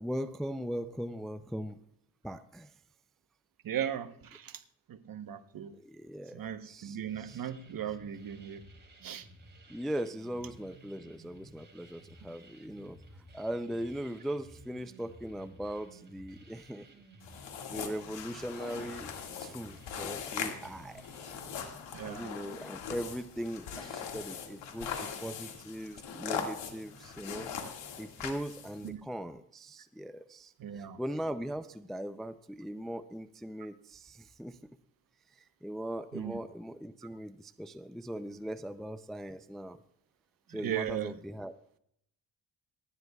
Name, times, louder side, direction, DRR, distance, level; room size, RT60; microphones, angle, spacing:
voice 1, 0.0-1.8 2.2-2.7 5.7-6.4 6.7-7.5 9.7-13.0 13.3-16.9 17.7-19.1 19.4-21.1 22.0-27.5 28.0-34.6 35.3-39.8 40.5-41.5, equal, ahead, 0.4 m, -39 dB
voice 2, 3.6-4.6 4.9-5.7 6.3-8.6 9.0-9.3 21.9-22.3 28.8-29.0 30.6-31.0 36.1-36.4 40.5-41.1, right 10 dB, 50° right, 1.0 m, -37 dB
sound 1, 7.1-21.7, right 1 dB, 25° right, 2.7 m, -55 dB
sound 2, 17.2-28.9, left 7 dB, 80° left, 2.0 m, -41 dB
27.0 x 9.5 x 2.3 m
cardioid pair, 85°, 43 cm